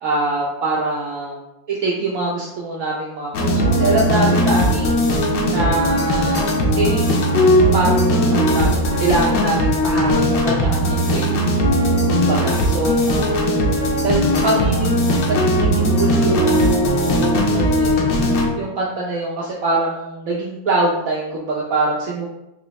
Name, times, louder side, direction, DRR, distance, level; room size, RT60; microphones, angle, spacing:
voice 1, 0.0-1.4 1.7-5.0 5.5-6.5 6.8-11.3 12.1-13.4 14.0-18.0 18.6-22.3, right 2 dB, 75° right, -5 dB, 0.8 m, -23 dB
sound 1, 3.3-18.5, equal, 70° left, 1.2 m, -18 dB
3.8 x 2.9 x 3.0 m, 0.88 s
omnidirectional pair, 2.1 m